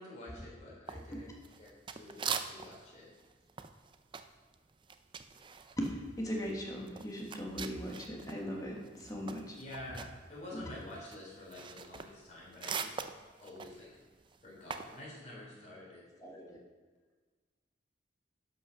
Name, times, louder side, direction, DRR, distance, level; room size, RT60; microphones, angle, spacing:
voice 1, 0.0-3.1 9.6-10.0 10.3-13.0 13.4-13.9 14.4-16.0, left 1 dB, 40° left, -5 dB, 3.5 m, -48 dB
sound 1, 0.9-2.9 3.2-8.4 8.7-15.0, right 6 dB, 25° right, 0.4 m, -42 dB
voice 2, 5.8-9.6 10.5-10.6 16.2-16.6, equal, 20° left, -1 dB, 1.5 m, -39 dB
11.5 x 5.5 x 5.6 m, 1.4 s
head